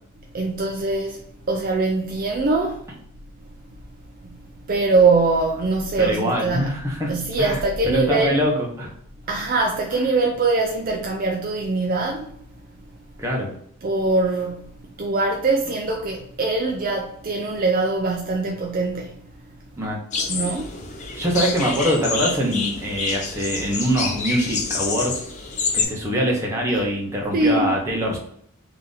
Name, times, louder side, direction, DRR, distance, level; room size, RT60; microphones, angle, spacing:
voice 1, 0.3-1.2 1.5-2.8 4.7-6.8 7.1-8.4 9.3-12.3 13.8-14.7 15.0-19.1 20.3-20.7 27.3-27.7, right 3 dB, 40° right, 0.4 m, -22 dB
voice 2, 6.0-8.9 13.2-13.5 19.8-20.0 21.1-25.2 25.7-28.2, equal, 15° right, 1.0 m, -23 dB
sound 1, 20.1-25.8, left 4 dB, 35° left, 0.5 m, -27 dB
3.7 x 2.9 x 3.9 m
head